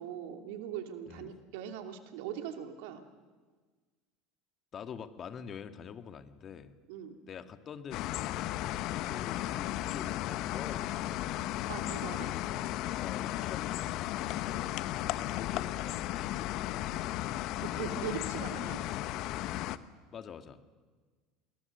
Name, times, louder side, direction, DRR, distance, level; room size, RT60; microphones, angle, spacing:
voice 1, 0.0-3.0 6.9-7.1 11.7-12.3 17.6-18.8, right 9 dB, 70° right, 5 dB, 2.7 m, -40 dB
voice 2, 4.7-6.7 7.3-8.7 9.0-11.2 12.1-14.7 15.1-17.2 20.1-20.6, left 7 dB, 40° left, 8 dB, 1.9 m, -46 dB
sound 1, 7.9-19.8, left 14 dB, 60° left, 1.0 m, -35 dB
28.5 x 21.0 x 6.8 m, 1.4 s
hypercardioid pair, 75°, 0 cm